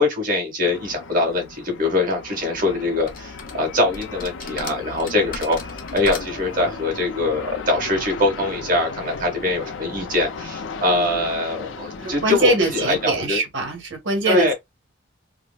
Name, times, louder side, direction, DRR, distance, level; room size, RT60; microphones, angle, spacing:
voice 1, 0.0-5.6 5.9-13.4 14.2-14.5, left 2 dB, 45° right, 1.6 m, -23 dB
sound 1, 0.6-13.3, left 4 dB, 90° left, 0.6 m, -36 dB
sound 2, 3.1-3.5 3.9-6.5, left 5 dB, 45° left, 0.7 m, -36 dB
voice 2, 10.9-11.2 11.9-14.5, right 2 dB, 80° right, 1.6 m, -23 dB
4.8 x 2.0 x 2.3 m
head